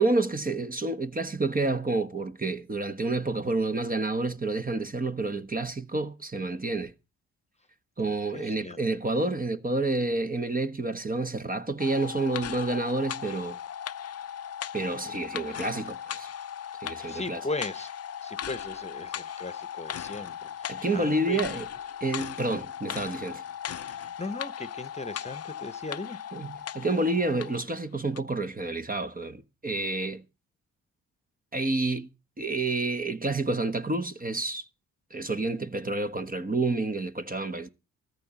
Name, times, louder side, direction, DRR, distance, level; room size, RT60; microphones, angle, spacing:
voice 1, 0.0-6.9 8.0-13.6 14.7-16.3 16.8-17.4 20.7-21.7 22.0-23.4 26.3-30.2 31.5-32.1 32.4-34.6 35.1-37.7, right 2 dB, 25° right, 1.2 m, -29 dB
voice 2, 8.3-8.8 17.1-17.9 18.2-21.4 24.0-26.2, left 2 dB, 20° left, 1.1 m, -37 dB
sound 1, 11.8-27.7 28.1-28.2, left 9 dB, 45° left, 0.6 m, -38 dB
14.0 x 13.5 x 4.2 m
hypercardioid pair, 45°, 36 cm